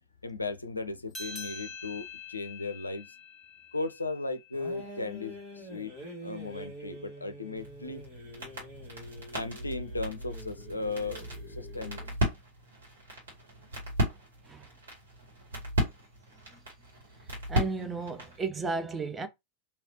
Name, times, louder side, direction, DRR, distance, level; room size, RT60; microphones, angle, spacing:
voice 1, 0.2-3.1 3.7-5.9 6.2-8.0 9.3-12.0, left 3 dB, 80° left, 0.4 m, -36 dB
sound 1, 1.1-6.0, left 4 dB, 10° left, 1.1 m, -46 dB
sound 2, 4.5-12.2, equal, 40° right, 1.7 m, -46 dB
sound 3, 7.5-18.4, equal, 65° right, 1.8 m, -36 dB
voice 2, 17.5-19.3, right 4 dB, 15° right, 0.5 m, -33 dB
3.2 x 2.8 x 2.7 m
figure-of-eight pair, 90°, 0 cm